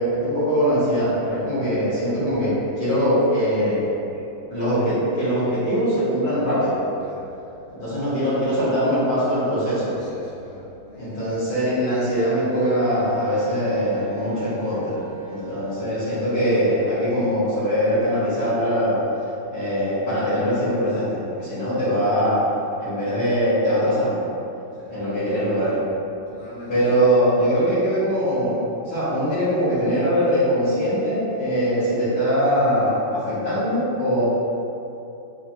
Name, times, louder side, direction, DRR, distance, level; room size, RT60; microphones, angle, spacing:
voice 1, 0.0-3.9 4.5-6.7 7.7-9.9 11.0-15.0 15.3-19.0 19.5-22.4 22.8-24.2 24.9-25.8 26.7-34.2, equal, 50° left, -12 dB, 1.9 m, -22 dB
voice 2, 9.7-11.2 15.4-15.6 24.7-24.9 26.3-26.8, left 1 dB, 20° left, -12 dB, 1.1 m, -42 dB
Wind instrument woodwind instrument, 12.5-18.4, equal, 85° right, 1.4 m, -40 dB
5.0 x 3.3 x 2.8 m, 2.8 s
omnidirectional pair, 2.2 m